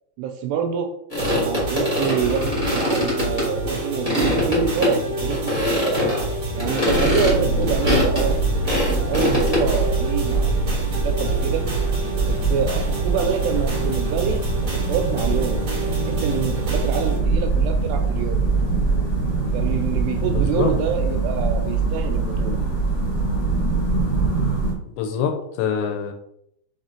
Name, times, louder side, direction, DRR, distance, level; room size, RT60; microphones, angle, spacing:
voice 1, 0.2-0.9 1.3-6.0 6.5-8.3 8.9-11.6 12.2-18.4 19.5-22.6, right 7 dB, 80° right, 4 dB, 2.5 m, -27 dB
sound 1, 1.1-5.0 5.2-6.2 6.6-9.7, left 2 dB, 20° left, 0.7 m, -23 dB
sound 2, 1.2-17.2, right 2 dB, 55° right, 1.1 m, -28 dB
sound 3, 6.9-24.7, right 3 dB, 55° left, 1.4 m, -23 dB
voice 2, 20.2-20.7 24.9-26.1, left 7 dB, 80° left, 4 dB, 2.7 m, -25 dB
6.7 x 3.3 x 4.3 m, 0.76 s
omnidirectional pair, 5.2 m